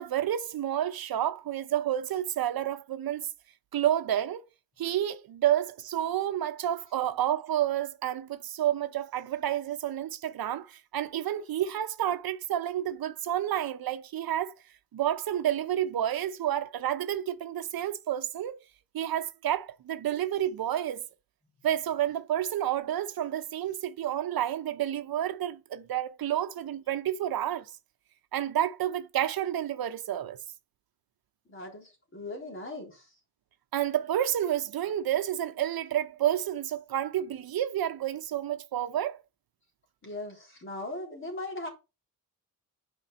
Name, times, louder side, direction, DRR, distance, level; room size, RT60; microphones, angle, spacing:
voice 1, 0.0-3.3 3.7-4.4 4.8-14.5 14.9-18.6 18.9-21.0 21.6-27.7 28.3-30.4 33.7-39.2, right 11 dB, 80° right, 0.8 m, -30 dB
voice 2, 31.5-33.1 40.0-41.7, left 2 dB, 35° left, 3.6 m, -39 dB
8.9 x 5.3 x 4.0 m
wide cardioid pair, 135°, 36 cm